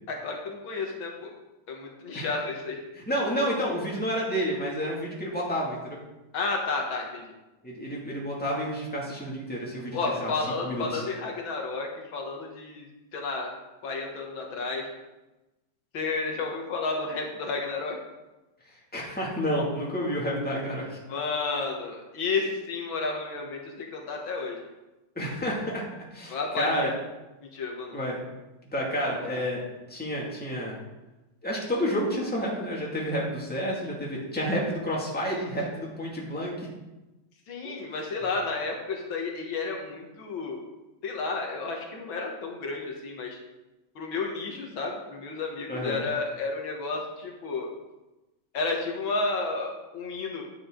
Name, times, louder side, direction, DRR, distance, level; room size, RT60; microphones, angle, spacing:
voice 1, 0.1-1.3 1.7-2.8 6.3-7.2 9.9-12.9 13.1-13.5 13.8-14.9 15.9-18.0 21.1-24.6 26.3-26.9 27.4-28.0 29.0-29.4 37.5-40.6 41.0-43.4 44.0-47.7 48.5-50.4, left 3 dB, 80° left, 0 dB, 2.1 m, -31 dB
voice 2, 2.9-6.0 7.6-10.3 10.6-11.0 18.9-21.0 25.2-25.8 26.1-26.9 27.9-28.2 28.7-29.6 29.9-30.8 31.4-36.7 37.6-37.7 45.7-46.0, equal, 5° left, -4 dB, 2.0 m, -30 dB
9.9 x 7.7 x 3.8 m, 1.0 s
omnidirectional pair, 2.2 m